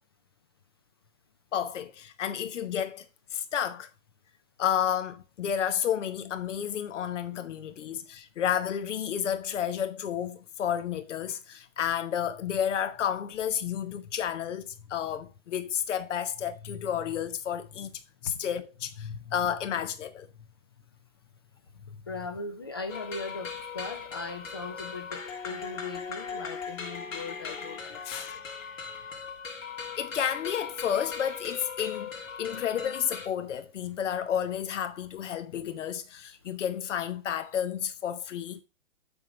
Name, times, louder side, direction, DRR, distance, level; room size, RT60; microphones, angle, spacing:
voice 1, 1.5-3.0 3.3-3.9 4.6-17.9 18.2-20.3 28.0-28.4 30.0-32.1 32.4-38.6, left 9 dB, 70° left, 1.0 m, -31 dB
voice 2, 22.1-28.3, left 3 dB, 20° left, 0.3 m, -39 dB
sound 1, 22.9-33.3, left 5 dB, 85° left, 2.1 m, -39 dB
7.9 x 3.7 x 4.9 m
hypercardioid pair, 145°, 38 cm